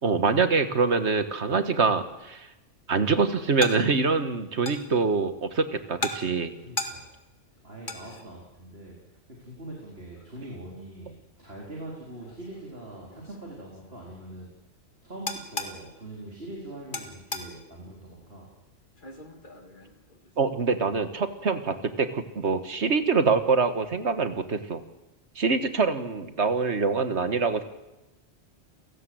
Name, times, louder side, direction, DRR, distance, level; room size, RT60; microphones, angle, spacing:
voice 1, 0.0-2.5 2.9-6.6 20.4-24.8 25.4-27.6, right 4 dB, 80° right, 9 dB, 1.9 m, -25 dB
sound 1, 2.1-20.7, left 2 dB, 45° left, 2.3 m, -41 dB
voice 2, 6.6-7.1 7.6-9.0 9.3-14.5 15.0-18.5, right 1 dB, 60° right, -2 dB, 4.5 m, -42 dB
30.0 x 17.0 x 7.8 m, 1.0 s
omnidirectional pair, 1.1 m